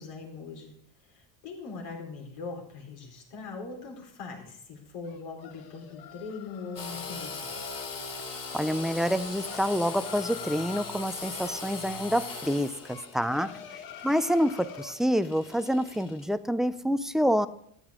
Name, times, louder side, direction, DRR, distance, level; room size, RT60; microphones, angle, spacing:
voice 1, 0.0-7.6 13.4-13.6, left 4 dB, 75° left, 0 dB, 4.3 m, -41 dB
sound 1, 5.0-7.0 9.1-11.1 12.8-15.0, left 9 dB, 55° left, 1.3 m, -46 dB
Engine / Sawing, 6.8-16.3, left 4 dB, 35° left, 3.1 m, -40 dB
voice 2, 8.5-13.5 14.0-17.5, equal, ahead, 13 dB, 0.3 m, -27 dB
13.0 x 9.2 x 3.6 m, 0.70 s
supercardioid pair, 110°, 43 cm